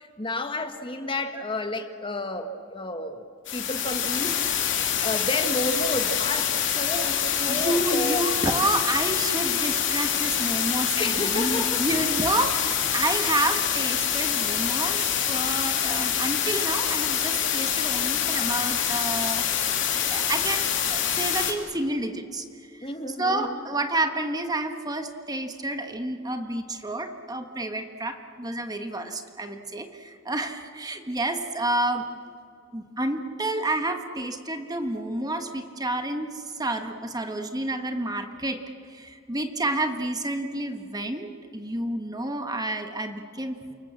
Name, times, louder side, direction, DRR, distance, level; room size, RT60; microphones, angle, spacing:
voice 1, 0.0-3.2 3.5-4.4 5.0-8.3 10.9-12.0 22.8-23.6, left 1 dB, 25° left, 1.5 m, -31 dB
sound 1, 3.4-21.5, left 9 dB, 65° left, 3.1 m, -26 dB
voice 2, 7.5-19.5 20.1-22.5 22.7-32.0 32.7-38.6 38.9-43.6, right 1 dB, 20° right, 1.4 m, -29 dB
29.0 x 25.0 x 7.6 m
head